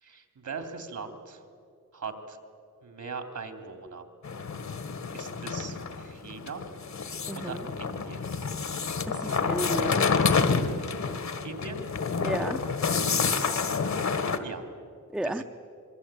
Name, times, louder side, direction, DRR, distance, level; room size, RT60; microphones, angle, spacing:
voice 1, 0.0-1.4 1.9-2.4 2.8-4.0 5.1-6.6 7.3-8.3 11.4-11.8 13.6-13.8 14.4-14.6 15.2-15.4, right 4 dB, 70° right, 7 dB, 3.0 m, -40 dB
sound 1, 4.2-14.4, left 5 dB, 65° left, 1.6 m, -28 dB
voice 2, 7.3-7.6 9.1-9.2 9.4-10.2 12.2-12.6 15.1-15.4, right 1 dB, ahead, 7 dB, 0.7 m, -32 dB
26.0 x 23.0 x 9.0 m, 2.5 s
wide cardioid pair, 150°, 31 cm